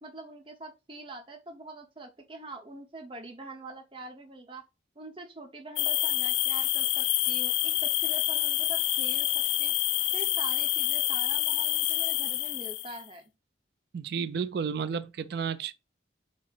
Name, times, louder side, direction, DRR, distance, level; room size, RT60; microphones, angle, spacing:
voice 1, 0.0-4.6 5.0-9.7 10.1-13.3, right 2 dB, 25° right, 0.8 m, -44 dB
sound 1, 5.8-13.0, left 14 dB, 75° left, 0.3 m, -27 dB
voice 2, 13.9-15.7, right 6 dB, 55° right, 0.3 m, -32 dB
4.6 x 2.1 x 4.1 m
head